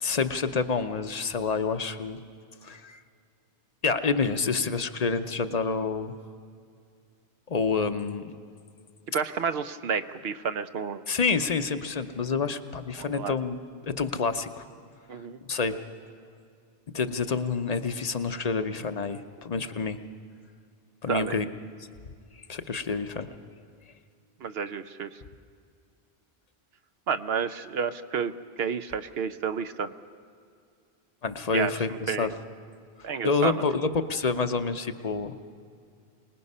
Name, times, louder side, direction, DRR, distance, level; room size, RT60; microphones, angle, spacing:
voice 1, 0.0-2.2 2.6-3.0 3.8-6.1 7.5-8.3 11.1-14.7 15.5-15.8 16.9-20.0 21.0-21.5 22.5-23.3 31.2-32.3 33.2-35.3, left 4 dB, 45° left, 9 dB, 0.7 m, -28 dB
voice 2, 9.1-11.0 13.0-13.4 15.1-15.4 21.1-21.3 24.4-25.1 27.1-28.3 28.6-29.9 31.5-31.7 32.1-32.3 33.0-33.5, right 6 dB, 70° right, 11 dB, 0.9 m, -30 dB
25.5 x 19.5 x 5.4 m, 2.3 s
omnidirectional pair, 1.1 m